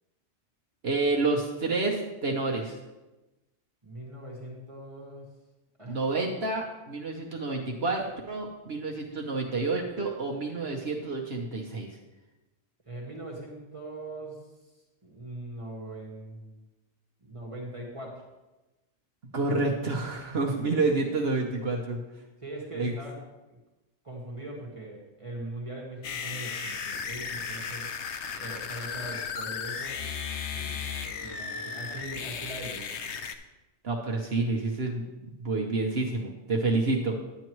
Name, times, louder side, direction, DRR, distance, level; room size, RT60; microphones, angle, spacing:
voice 1, 0.8-2.8 5.9-11.9 19.3-22.0 22.8-22.9 33.8-37.2, right 3 dB, 60° right, 0 dB, 1.2 m, -29 dB
voice 2, 3.8-5.3 5.8-6.0 12.9-14.4 15.0-16.6 17.2-18.3 20.6-20.8 22.4-23.2 23.5-23.6 24.0-27.9 28.4-30.0 30.5-30.9 31.2-32.9, right 1 dB, 25° right, -2 dB, 1.6 m, -41 dB
sound 1, 26.0-33.3, left 6 dB, 70° left, 1.0 m, -35 dB
10.5 x 9.3 x 3.1 m, 1.1 s
omnidirectional pair, 1.2 m